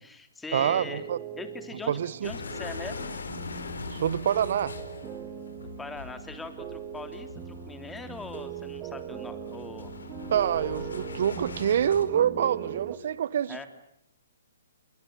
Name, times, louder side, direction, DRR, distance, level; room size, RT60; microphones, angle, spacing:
voice 1, 0.0-1.1 1.4-3.1 5.8-10.0 13.5-13.7, left 3 dB, 10° left, 3.3 m, -41 dB
voice 2, 0.5-1.2 1.9-2.3 3.9-4.8 10.3-13.7, right 9 dB, 55° right, 1.4 m, -26 dB
sound 1, 0.6-13.0, right 10 dB, 25° right, 3.0 m, -40 dB
sound 2, 2.2-12.0, left 4 dB, 75° left, 4.9 m, -41 dB
28.5 x 23.0 x 8.8 m
hypercardioid pair, 135°, 0 cm